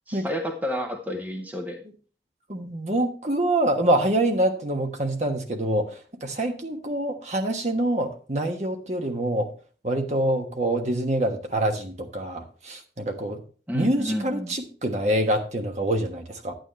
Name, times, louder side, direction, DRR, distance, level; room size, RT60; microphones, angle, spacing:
voice 1, 0.1-1.8 13.7-14.6, equal, 10° right, 3 dB, 0.8 m, -30 dB
voice 2, 2.5-9.5 9.8-13.4 13.7-16.5, right 1 dB, 40° right, 4 dB, 1.3 m, -25 dB
11.0 x 9.1 x 3.2 m, 0.38 s
head